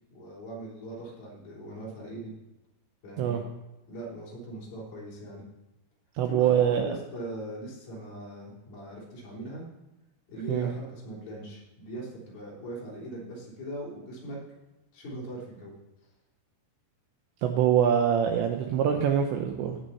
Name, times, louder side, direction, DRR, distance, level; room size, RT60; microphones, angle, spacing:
voice 1, 0.1-2.3 3.0-3.4 3.9-5.4 6.2-9.6 10.3-14.4 14.9-15.7, right 1 dB, 50° left, -6 dB, 5.1 m, -40 dB
voice 2, 6.2-7.0 10.5-10.7 17.4-19.8, right 9 dB, 85° right, 4 dB, 2.6 m, -24 dB
18.0 x 6.5 x 4.2 m, 1.0 s
omnidirectional pair, 6.0 m